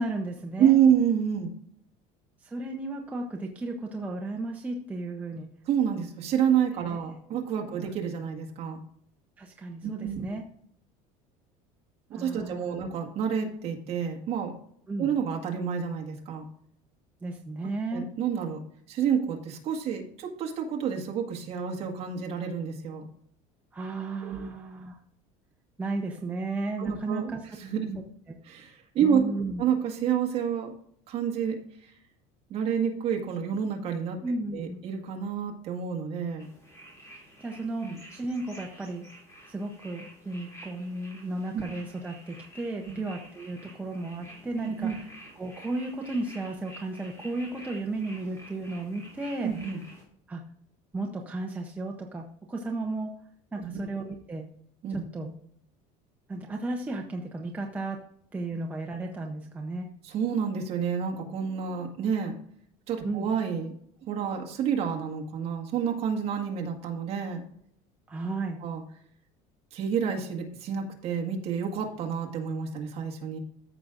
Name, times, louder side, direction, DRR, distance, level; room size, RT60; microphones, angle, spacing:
voice 1, 0.0-0.8 2.4-5.5 6.8-7.8 9.4-10.4 12.1-12.9 14.9-15.1 17.2-18.0 23.7-25.0 25.8-27.4 29.0-29.6 34.2-34.8 37.4-39.1 39.5-45.1 45.4-49.5 50.3-50.4 50.9-53.1 53.5-54.5 55.1-55.3 56.3-58.0 58.3-59.9 63.0-63.3 68.1-68.6, right 2 dB, 10° right, 1 dB, 0.7 m, -34 dB
voice 2, 0.6-1.5 5.7-8.8 9.8-10.4 12.1-14.5 15.0-16.4 17.9-18.6 18.9-23.1 24.2-24.5 26.8-28.0 28.4-29.3 29.6-30.7 31.1-31.6 32.5-34.2 34.5-36.5 37.8-38.0 41.5-41.6 42.9-43.0 44.6-45.0 49.4-49.8 53.6-53.8 54.8-55.0 60.0-62.4 62.9-63.8 64.1-67.4 68.6-68.8 69.7-73.4, right 8 dB, 40° right, 2 dB, 1.7 m, -29 dB
sound 1, 36.4-50.0, right 1 dB, 20° left, 2.8 m, -50 dB
14.0 x 5.9 x 2.5 m, 0.66 s
cardioid pair, 165°, 16 cm